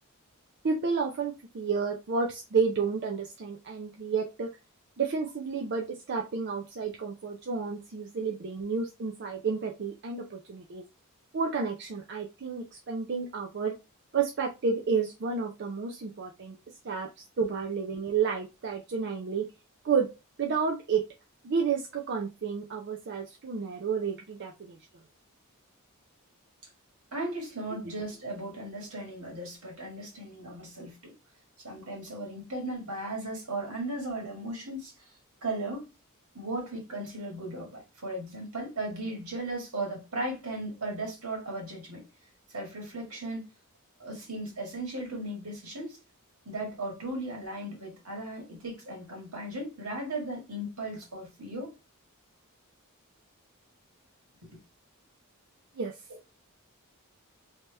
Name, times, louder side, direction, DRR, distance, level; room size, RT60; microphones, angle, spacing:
voice 1, 0.6-4.5 5.0-10.8 11.3-13.7 14.1-16.6 16.8-19.5 19.8-20.1 20.4-21.0 21.4-24.8 55.7-56.0, right 5 dB, 50° right, 0.5 m, -31 dB
voice 2, 27.1-31.1 31.6-35.1 35.4-35.9 36.3-42.0 42.5-43.5 44.0-46.0 46.4-51.7, right 1 dB, 75° right, 1.8 m, -36 dB
3.3 x 2.8 x 3.3 m
head